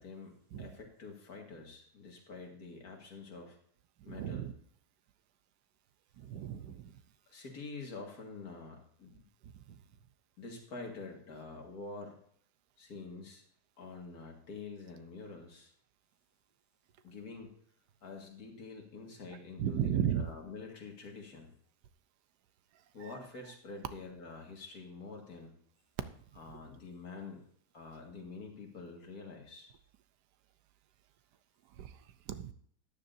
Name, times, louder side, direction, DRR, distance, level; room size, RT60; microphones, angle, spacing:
voice 1, 0.0-3.6 4.1-4.5 7.3-9.2 10.4-12.2 12.8-13.4 13.8-15.7 17.0-17.5 18.0-21.5 22.9-25.5 26.4-27.4 27.7-29.7, left 4 dB, 65° left, 1 dB, 2.3 m, -47 dB
voice 2, 4.0-4.5 6.2-7.0 9.7-9.8 19.6-20.3 23.0-23.1 31.8-32.0 32.3-32.5, right 9 dB, 85° right, 12 dB, 1.3 m, -34 dB
13.0 x 10.0 x 2.7 m, 0.62 s
omnidirectional pair, 1.7 m